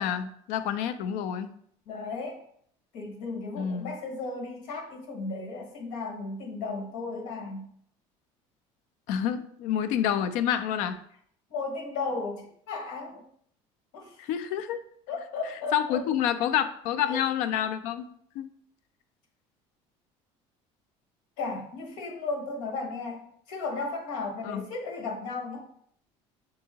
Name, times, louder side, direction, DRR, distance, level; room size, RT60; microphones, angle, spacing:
voice 1, 0.0-1.5 3.5-4.0 9.1-11.0 14.2-14.8 15.7-18.1 18.4-18.5 24.4-24.6, left 9 dB, 70° left, 11 dB, 0.4 m, -28 dB
voice 2, 1.9-2.4 2.9-7.6 11.5-13.2 13.9-14.2 15.1-16.0 17.1-17.2 21.4-25.7, left 3 dB, 90° left, 2 dB, 1.3 m, -35 dB
6.7 x 2.7 x 2.8 m, 0.64 s
cardioid pair, 160°, 13 cm